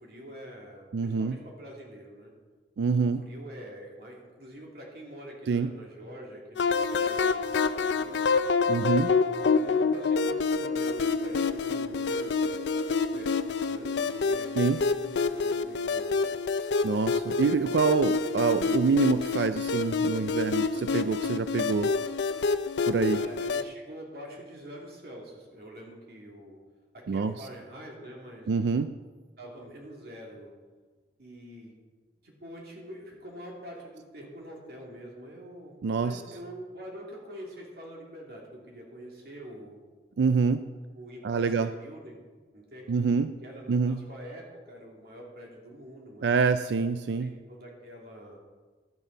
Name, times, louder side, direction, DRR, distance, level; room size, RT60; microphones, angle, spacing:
voice 1, 0.0-2.3 2.9-8.4 9.5-16.3 23.1-26.6 26.9-28.5 29.4-30.5 31.2-31.7 32.2-39.8 40.9-42.2 42.5-46.4 47.2-48.4, equal, 55° right, -1 dB, 2.4 m, -45 dB
voice 2, 0.9-1.4 2.8-3.3 5.5-5.7 8.7-9.1 14.6-14.8 16.8-22.0 22.9-23.2 27.1-27.3 28.5-28.9 35.8-36.2 40.2-40.7 41.2-41.7 42.9-43.3 43.7-44.0 46.2-47.3, right 5 dB, 80° right, 11 dB, 0.4 m, -26 dB
sound 1, 6.6-23.6, left 4 dB, 80° left, 0.4 m, -27 dB
12.0 x 9.3 x 4.0 m, 1.4 s
head